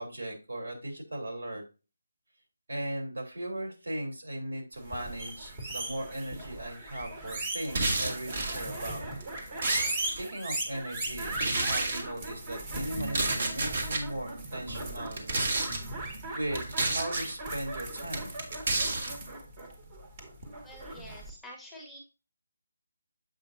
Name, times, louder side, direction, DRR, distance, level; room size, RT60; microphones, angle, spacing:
voice 1, 0.0-1.6 2.7-9.0 10.0-15.3 16.3-18.3, right 1 dB, 75° right, 2 dB, 3.4 m, -38 dB
sound 1, 4.8-21.3, right 2 dB, 25° right, 1.7 m, -38 dB
sound 2, 7.6-8.6 9.2-10.2 11.3-12.0 13.0-14.0 15.1-15.8 16.5-17.3 18.1-19.1, right 2 dB, 50° right, 1.7 m, -30 dB
voice 2, 20.6-22.0, left 1 dB, ahead, -1 dB, 1.3 m, -48 dB
7.7 x 5.2 x 2.7 m, 0.31 s
figure-of-eight pair, 160°, 0 cm